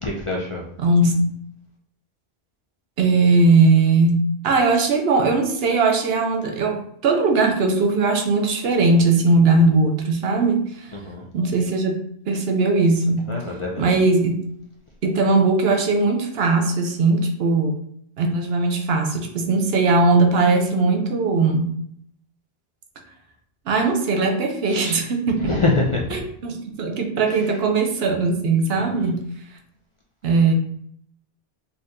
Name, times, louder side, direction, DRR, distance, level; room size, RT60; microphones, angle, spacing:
voice 1, 0.0-0.7 10.9-11.2 13.3-13.9 24.7-25.0 25.4-26.2 28.7-29.1, left 2 dB, 40° left, -2 dB, 0.5 m, -25 dB
voice 2, 0.8-1.2 3.0-10.9 11.3-12.0 12.3-13.3 13.8-14.4 15.0-17.8 18.2-21.7 23.7-25.6 26.1-29.2 30.2-30.5, right 3 dB, 70° right, 3 dB, 0.8 m, -19 dB
4.3 x 2.7 x 2.5 m, 0.67 s
omnidirectional pair, 1.1 m